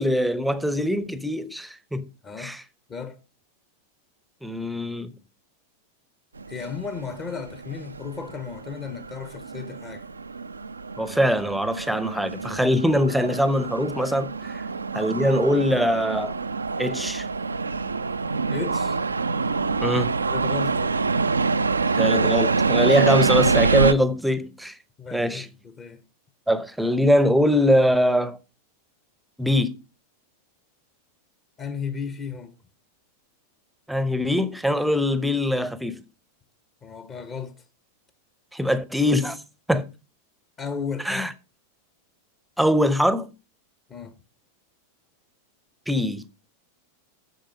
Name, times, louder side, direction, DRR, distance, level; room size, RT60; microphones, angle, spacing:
voice 1, 0.0-2.1 2.4-2.6 4.4-5.1 11.0-14.6 14.9-16.4 16.8-17.3 19.8-20.1 21.9-24.8 25.1-25.5 26.5-28.4 29.4-29.8 33.9-36.0 38.5-39.4 39.7-39.9 41.0-41.3 42.6-43.3 45.9-46.2, equal, ahead, 0.9 m, -22 dB
sound 1, 6.4-23.9, right 4 dB, 75° right, 0.5 m, -26 dB
voice 2, 6.5-10.0 14.4-14.5 18.5-19.0 20.2-21.0 25.0-26.0 31.6-32.5 36.8-37.5 40.6-41.3 43.9-44.1, left 6 dB, 25° left, 1.1 m, -34 dB
9.2 x 7.0 x 5.3 m
figure-of-eight pair, 90°, 0 cm